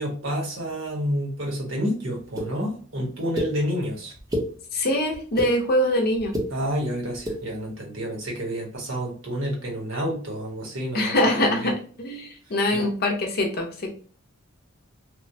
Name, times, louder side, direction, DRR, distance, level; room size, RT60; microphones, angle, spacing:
voice 1, 0.0-4.1 6.5-11.7 12.7-12.9, equal, 70° right, -1 dB, 1.0 m, -29 dB
sound 1, 2.4-2.5 3.4-3.5 4.1-4.5 5.1-5.5 6.2-6.5 7.1-7.4, equal, 20° right, 0.7 m, -27 dB
voice 2, 4.7-6.4 10.9-13.9, left 1 dB, 50° left, 2 dB, 0.6 m, -23 dB
3.0 x 2.1 x 2.6 m, 0.41 s
head